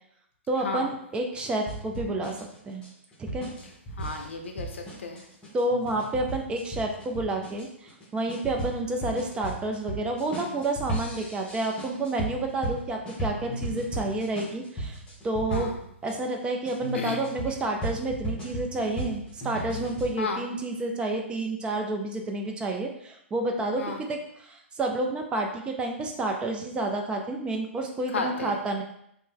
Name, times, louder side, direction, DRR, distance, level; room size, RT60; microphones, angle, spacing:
voice 1, 0.5-2.4 2.6-2.8 3.3-3.5 5.5-15.7 16.0-28.8, right 2 dB, 15° right, 2 dB, 0.4 m, -30 dB
sound 1, 1.7-16.1 16.7-20.1, right 1 dB, 15° left, 1.0 m, -36 dB
voice 2, 4.0-5.2 15.5-15.7 16.9-17.2 20.2-20.4 23.8-24.0 28.1-28.6, left 4 dB, 75° left, 4 dB, 0.5 m, -33 dB
2.6 x 2.0 x 3.7 m, 0.73 s
hypercardioid pair, 120°, 7 cm